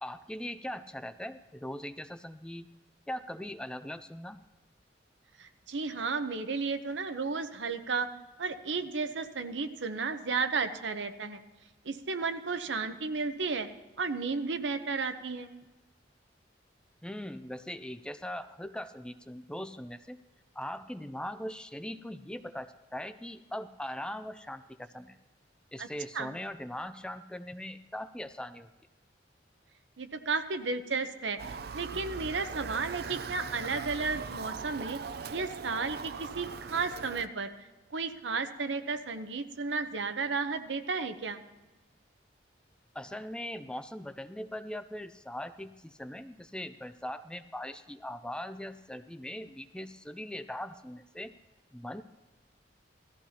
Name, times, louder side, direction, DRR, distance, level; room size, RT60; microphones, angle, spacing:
voice 1, 0.0-2.7 3.1-4.4 17.0-20.2 20.5-25.2 25.7-28.7 42.9-51.3 51.7-52.0, left 1 dB, 5° left, 11 dB, 0.4 m, -40 dB
voice 2, 5.4-8.1 8.4-11.4 11.8-13.7 14.0-15.5 25.8-25.9 26.1-26.3 30.0-35.0 35.3-37.5 37.9-41.4, right 4 dB, 80° right, 9 dB, 0.9 m, -33 dB
Motor vehicle (road) / Siren, 31.4-37.3, right 5 dB, 60° right, 0.5 m, -40 dB
17.5 x 14.0 x 2.9 m, 1.1 s
head